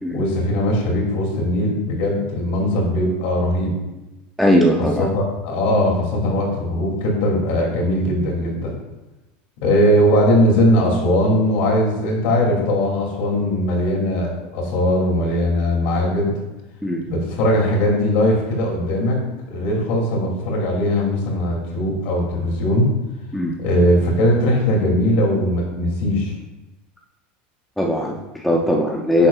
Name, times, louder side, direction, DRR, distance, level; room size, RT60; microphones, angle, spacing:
voice 1, 0.1-3.7 4.8-8.7 9.6-16.3 17.1-19.2 19.5-22.9 23.6-26.3, equal, 60° left, -1 dB, 2.6 m, -19 dB
voice 2, 4.4-5.1 16.8-17.0 23.3-23.6 27.8-29.3, left 1 dB, ahead, -1 dB, 0.5 m, -19 dB
11.0 x 6.7 x 2.4 m, 1.0 s
supercardioid pair, 165°, 5 cm